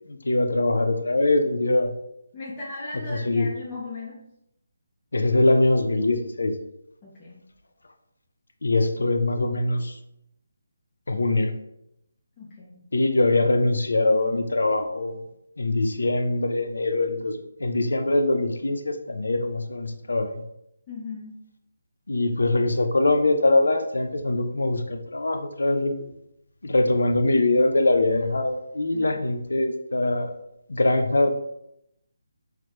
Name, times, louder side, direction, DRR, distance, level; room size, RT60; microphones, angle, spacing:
voice 1, 0.1-1.9 3.1-3.5 5.1-6.5 8.6-10.0 11.1-11.5 12.9-15.2 15.6-20.4 22.1-25.9 26.6-30.3 30.7-31.3, left 2 dB, 90° left, 6 dB, 0.3 m, -23 dB
voice 2, 2.3-4.2 7.0-7.4 12.4-12.8 20.9-21.4 28.9-29.3, left 3 dB, 15° left, -7 dB, 0.4 m, -37 dB
2.2 x 2.0 x 2.8 m, 0.80 s
hypercardioid pair, 170°, 0 cm